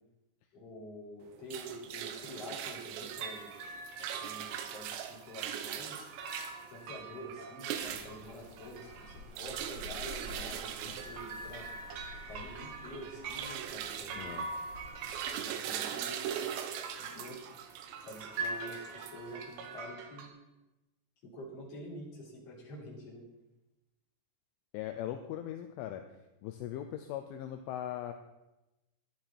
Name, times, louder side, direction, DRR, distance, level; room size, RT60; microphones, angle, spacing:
voice 1, 0.5-3.5 4.0-6.1 6.7-11.7 12.3-14.4 15.3-16.4 17.0-17.4 18.0-20.3 21.2-23.2, equal, 30° left, -4 dB, 4.1 m, -47 dB
sound 1, 1.2-19.7, right 9 dB, 85° right, 3.7 m, -41 dB
sound 2, 2.6-2.9 3.1-20.3, right 4 dB, 70° right, 3.1 m, -44 dB
sound 3, 7.7-15.2, left 2 dB, 40° right, 2.9 m, -51 dB
voice 2, 14.2-14.5 24.7-26.0 26.4-28.1, left 11 dB, 80° left, 6 dB, 3.0 m, -39 dB
14.5 x 11.5 x 4.4 m, 0.98 s
omnidirectional pair, 5.9 m